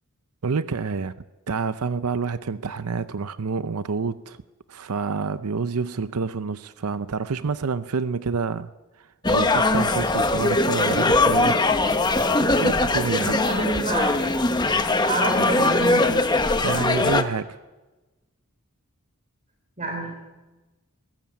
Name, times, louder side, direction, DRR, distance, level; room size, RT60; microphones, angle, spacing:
voice 1, 0.4-1.1 1.5-4.4 4.7-8.7 9.3-11.6 12.4-13.3 16.6-17.6, right 5 dB, 85° right, 13 dB, 0.6 m, -28 dB
sound 1, 9.2-17.2, left 2 dB, 20° left, 1.0 m, -21 dB
voice 2, 13.2-14.3 15.0-16.2 19.8-20.1, right 2 dB, 35° right, 2 dB, 3.4 m, -27 dB
21.5 x 18.0 x 8.7 m, 1.2 s
head